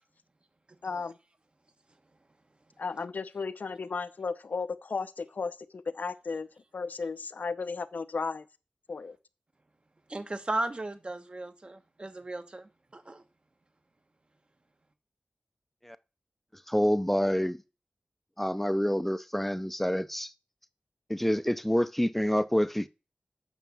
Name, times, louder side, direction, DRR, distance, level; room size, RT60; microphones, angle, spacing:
voice 1, 0.8-1.1 2.8-6.5 6.7-8.4 8.9-9.2, left 4 dB, 85° left, 0.7 m, -34 dB
voice 2, 10.1-13.2, right 2 dB, 40° right, 1.2 m, -36 dB
voice 3, 16.7-17.6 18.4-20.3 21.1-22.9, equal, 5° left, 0.6 m, -27 dB
9.1 x 6.1 x 7.0 m
wide cardioid pair, 75°, 3 cm